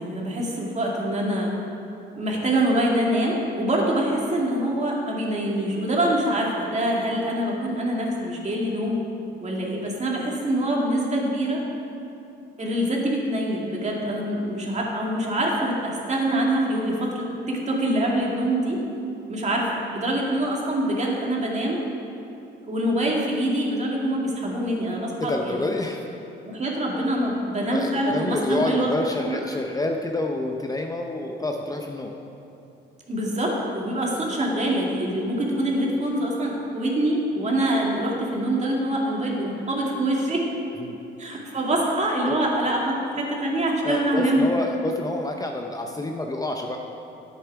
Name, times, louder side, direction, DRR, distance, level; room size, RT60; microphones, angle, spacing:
voice 1, 0.0-1.5 2.1-9.0 9.4-11.6 12.6-18.8 19.3-21.8 22.7-25.5 26.5-28.9 29.3-29.4 33.1-40.5 41.2-44.5, right 1 dB, 35° right, -2 dB, 2.1 m, -25 dB
voice 2, 25.2-26.0 27.7-32.1 40.8-41.0 42.3-42.4 43.8-46.8, left 2 dB, 20° left, 2 dB, 0.7 m, -28 dB
10.5 x 8.3 x 4.7 m, 2.8 s
cardioid pair, 90°, 20 cm